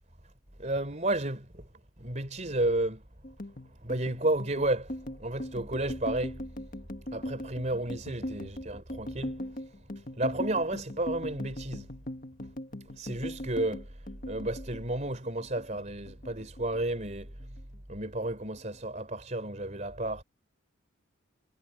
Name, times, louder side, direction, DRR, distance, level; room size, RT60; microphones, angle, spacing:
voice 1, 0.6-1.7 2.0-3.0 3.7-6.6 7.1-11.9 12.9-17.6 17.9-20.2, right 1 dB, 35° right, 3.8 m, -32 dB
sound 1, 3.2-15.8 16.1-17.1 17.4-17.8 18.1-18.7, left 1 dB, 40° left, 1.6 m, -40 dB
head